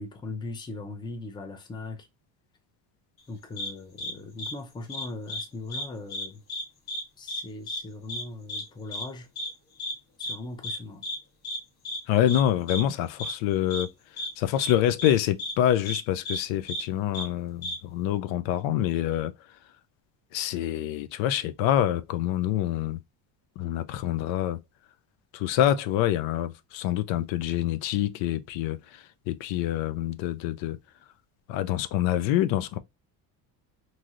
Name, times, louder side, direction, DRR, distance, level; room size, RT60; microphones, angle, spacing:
voice 1, 0.0-2.1 3.3-6.4 7.2-9.3 10.2-11.0, left 2 dB, 10° left, 0.4 m, -39 dB
sound 1, 3.6-3.7 4.0-4.1 4.4-4.5 4.9-5.4 5.7-5.8 6.1-6.6 6.9-7.0 7.3-7.4 7.7-7.8 8.1-8.2 8.5-8.6 8.9-9.0 9.4-9.5 9.8-9.9 10.2-10.3 10.6-10.8 11.0-11.2 11.4-11.6 11.8-12.0 12.3-12.4 12.7-12.8 13.2-13.3 13.7-13.8 14.2-14.3 14.6-14.7 15.0-15.1 15.4-15.5 15.9-16.0 16.3-16.4 16.7-16.8 17.1-17.3 17.6-17.7, left 1 dB, 55° left, 1.4 m, -33 dB
voice 2, 12.1-13.9 14.4-19.3 20.3-23.0 23.6-24.6 25.3-30.8 31.5-32.8, left 12 dB, 85° left, 0.5 m, -26 dB
3.1 x 2.7 x 2.4 m
cardioid pair, 135°, 44 cm